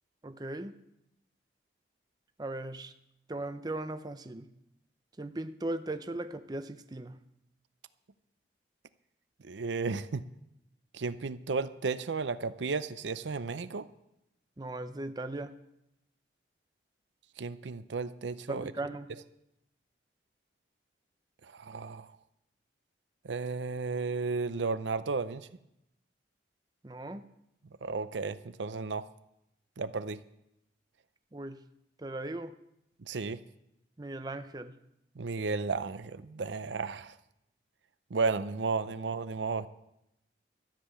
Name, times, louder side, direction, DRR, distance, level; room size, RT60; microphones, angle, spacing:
voice 1, 0.2-0.8 2.4-2.9 3.3-4.5 5.2-7.2 14.6-15.5 18.5-19.1 26.8-27.2 31.3-31.6 32.0-32.6 34.0-34.8, right 2 dB, 20° right, 9 dB, 0.5 m, -38 dB
voice 2, 9.4-10.2 10.9-13.8 17.4-18.6 21.5-22.1 23.2-25.5 27.8-29.0 29.8-30.2 33.1-33.4 35.2-37.1 38.1-39.7, right 4 dB, 85° right, 14 dB, 0.6 m, -33 dB
13.5 x 7.5 x 8.3 m, 0.84 s
head